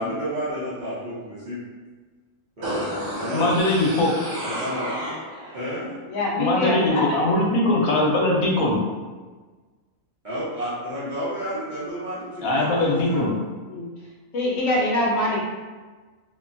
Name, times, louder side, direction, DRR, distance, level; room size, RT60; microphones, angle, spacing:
voice 1, 0.0-1.6 2.6-3.4 4.4-4.9 5.5-5.9 10.2-13.3, equal, 40° right, -11 dB, 0.9 m, -31 dB
sound 1, 2.6-5.6 5.9-6.0, equal, 80° right, 1.1 m, -31 dB
voice 2, 3.3-4.1 6.4-8.8 12.4-13.3, left 2 dB, 85° left, -2 dB, 1.1 m, -21 dB
voice 3, 6.0-7.2 13.7-13.9 14.3-15.4, left 1 dB, 65° left, -4 dB, 0.9 m, -24 dB
2.8 x 2.2 x 2.5 m, 1.3 s
omnidirectional pair, 1.4 m